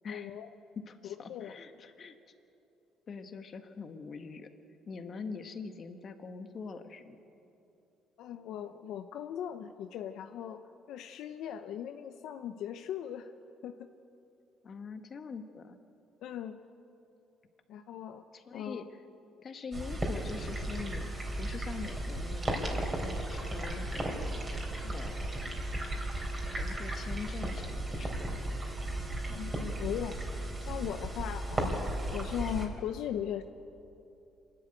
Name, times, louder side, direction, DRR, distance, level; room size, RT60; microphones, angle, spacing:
voice 1, 0.1-0.5 1.0-1.6 8.2-10.6 10.9-13.3 13.6-13.9 16.2-16.6 17.7-18.2 18.5-18.9 24.8-24.9 29.3-30.2 30.6-33.4, left 10 dB, 75° left, 8 dB, 0.7 m, -38 dB
voice 2, 0.7-2.1 3.1-4.5 4.9-7.2 14.6-15.8 18.3-18.8 19.4-21.1 21.4-24.2 24.9-25.5 26.5-28.2, left 5 dB, 40° left, 8 dB, 1.5 m, -43 dB
sound 1, 19.7-32.7, right 1 dB, 20° right, 3.4 m, -35 dB
26.0 x 11.5 x 9.1 m, 2.8 s
cardioid pair, 115°, 0 cm